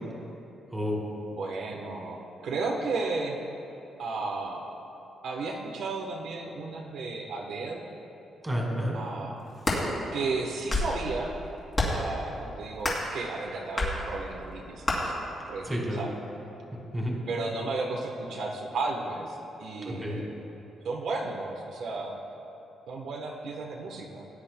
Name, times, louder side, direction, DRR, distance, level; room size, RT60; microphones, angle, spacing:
voice 1, 0.7-1.2 8.4-9.0 15.6-16.0 16.9-17.2 19.8-20.2, equal, 10° right, -2 dB, 2.0 m, -30 dB
voice 2, 1.3-3.4 4.0-4.6 5.2-7.8 8.9-9.4 10.1-11.3 11.9-15.1 15.5-16.1 17.3-20.3 20.8-22.2 22.9-24.2, right 3 dB, 75° right, 0 dB, 1.0 m, -33 dB
sound 1, 9.4-9.8 10.5-11.0 11.7-12.1 12.8-13.1 13.8-13.9 14.8-15.0, left 2 dB, 25° left, 2.5 m, -27 dB
19.0 x 9.7 x 2.2 m, 3.0 s
cardioid pair, 150°, 0 cm